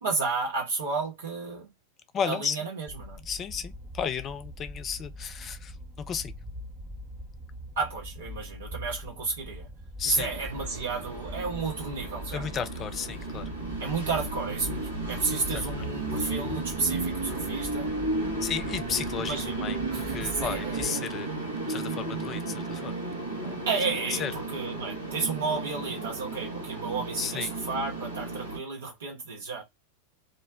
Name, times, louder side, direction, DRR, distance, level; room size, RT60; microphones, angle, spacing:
voice 1, 0.0-1.7 2.3-3.2 7.8-9.7 10.0-12.4 13.8-17.9 19.2-21.1 23.7-29.6, right 4 dB, 65° right, 0.8 m, -32 dB
voice 2, 2.1-2.6 3.2-6.3 10.0-10.3 12.3-13.5 15.5-15.6 18.4-21.3 21.7-23.0 23.4-23.6 24.1-24.3 27.2-27.5, left 7 dB, 30° left, 0.5 m, -33 dB
sound 1, 2.9-20.9, equal, 15° right, 0.6 m, -42 dB
Train, 10.1-28.6, right 2 dB, 85° right, 1.1 m, -34 dB
2.5 x 2.1 x 3.5 m
figure-of-eight pair, 90°, 0 cm